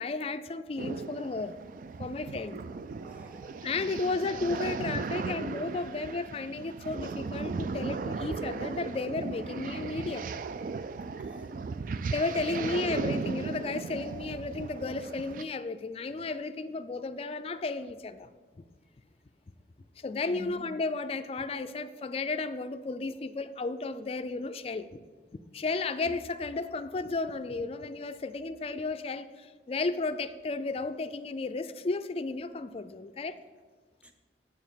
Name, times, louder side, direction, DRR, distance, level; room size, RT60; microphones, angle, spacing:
voice 1, 0.0-1.5 2.0-2.6 3.6-10.3 12.1-18.3 20.0-24.9 25.5-33.4, left 3 dB, 35° left, 10 dB, 0.4 m, -33 dB
sound 1, 0.8-15.4, right 4 dB, 50° right, 0.3 m, -36 dB
voice 2, 2.9-4.1 11.2-11.5 12.5-13.1 20.3-20.6 26.0-26.1 34.0-34.1, equal, 5° right, 5 dB, 0.7 m, -48 dB
7.2 x 7.1 x 5.6 m, 1.4 s
head